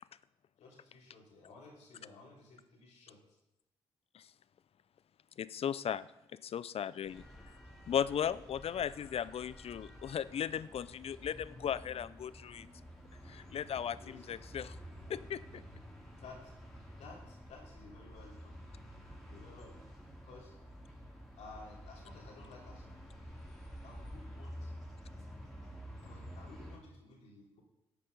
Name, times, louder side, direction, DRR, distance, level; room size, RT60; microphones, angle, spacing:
voice 1, 0.6-3.4 14.0-14.3 16.2-16.5 17.0-18.7 19.3-19.9 20.2-20.5 21.4-23.3 23.8-24.7 26.0-27.6, left 3 dB, 85° left, -1 dB, 3.3 m, -55 dB
voice 2, 5.4-6.1 6.4-7.5 7.9-12.7 13.3-14.8 15.1-15.6, left 9 dB, 60° left, 17 dB, 0.5 m, -37 dB
sound 1, 7.0-26.8, equal, 5° left, 4.0 m, -50 dB
12.5 x 8.4 x 5.4 m, 0.91 s
cardioid pair, 60°, 11 cm